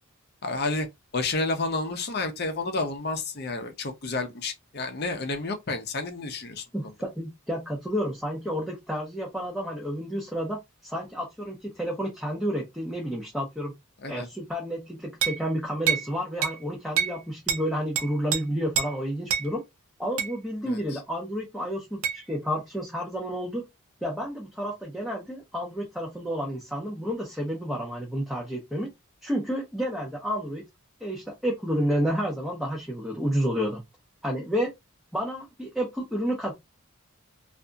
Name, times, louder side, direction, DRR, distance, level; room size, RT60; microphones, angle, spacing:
voice 1, 0.4-0.9 1.1-6.6 14.0-14.3 20.6-21.0, left 3 dB, 45° left, 0.6 m, -30 dB
voice 2, 6.7-13.7 14.1-19.6 20.0-23.6 24.0-28.9 29.2-30.7 31.0-33.8 34.2-34.7 35.1-36.5, equal, ahead, 0.6 m, -30 dB
sound 1, 15.2-15.4 15.9-16.1 16.4-16.6 17.0-17.2 17.5-17.6 18.0-18.4 18.8-18.9 19.3-19.5 20.2-20.3 22.0-22.2, right 7 dB, 80° right, 0.5 m, -26 dB
2.7 x 2.5 x 2.3 m
head